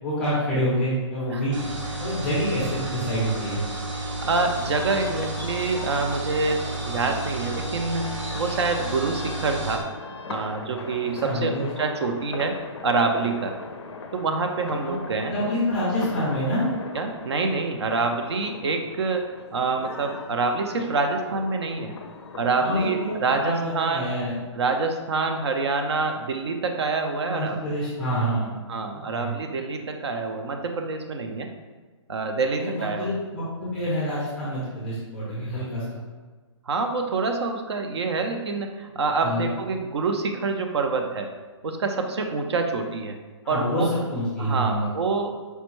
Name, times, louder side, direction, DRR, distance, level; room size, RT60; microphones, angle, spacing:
voice 1, 0.0-1.6 2.0-3.6 11.2-11.7 14.8-14.9 15.2-16.7 22.6-24.3 27.2-28.5 28.9-29.3 32.6-36.0 39.2-39.5 43.4-43.8 44.1-44.9, equal, 5° left, -8 dB, 0.4 m, -27 dB
sound 1, 1.5-9.8, right 2 dB, 85° right, 0.9 m, -32 dB
voice 2, 4.2-9.9 10.3-13.6 14.1-15.3 16.9-21.9 22.4-24.1 24.5-27.6 28.7-31.5 32.1-33.2 36.7-41.3 41.6-43.2 43.5-43.9 44.4-45.4, right 3 dB, 60° right, 4 dB, 0.4 m, -26 dB
sound 2, 4.3-23.4, left 4 dB, 65° left, 0.4 m, -40 dB
4.3 x 2.1 x 2.9 m, 1.4 s
hypercardioid pair, 170°, 16 cm